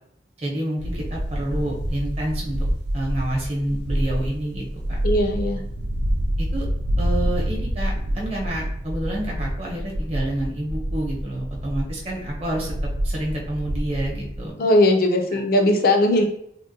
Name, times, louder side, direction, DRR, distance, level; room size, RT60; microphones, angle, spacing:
voice 1, 0.4-2.6 2.9-4.6 6.4-6.6 7.0-12.8 13.0-14.6 15.3-15.4, right 1 dB, 35° right, -2 dB, 0.8 m, -28 dB
sound 1, 0.8-14.5, equal, 70° right, 0.4 m, -27 dB
voice 2, 5.0-5.6 14.6-16.2, left 1 dB, 50° left, 3 dB, 0.5 m, -18 dB
3.6 x 2.2 x 2.6 m, 0.73 s
head